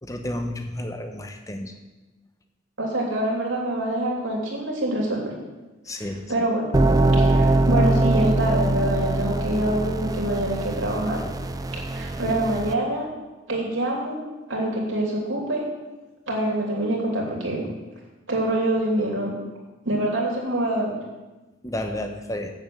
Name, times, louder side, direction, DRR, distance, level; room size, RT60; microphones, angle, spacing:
voice 1, 0.0-1.8 5.8-6.2 21.6-22.5, left 1 dB, 15° left, 6 dB, 0.9 m, -31 dB
voice 2, 2.8-5.3 5.9-6.7 7.1-11.2 11.7-13.1 13.5-14.2 14.5-15.7 16.3-17.7 18.3-19.3 19.8-20.9, right 1 dB, 80° right, -2 dB, 3.0 m, -25 dB
sound 1, 6.7-12.7, right 2 dB, 20° right, 0.4 m, -22 dB
7.9 x 7.2 x 7.8 m, 1.1 s
head